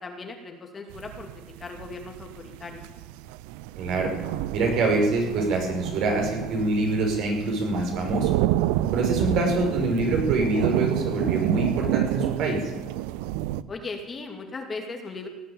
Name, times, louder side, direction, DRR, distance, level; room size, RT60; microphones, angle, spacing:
voice 1, 0.0-2.8 13.7-15.3, left 3 dB, 25° left, 3 dB, 2.6 m, -38 dB
sound 1, 0.9-13.6, right 15 dB, 85° right, 0.5 m, -29 dB
voice 2, 3.8-4.1 4.5-8.3 8.9-12.6, right 2 dB, 60° right, 1 dB, 5.8 m, -25 dB
17.5 x 9.1 x 8.9 m, 1.1 s
supercardioid pair, 110°, 0 cm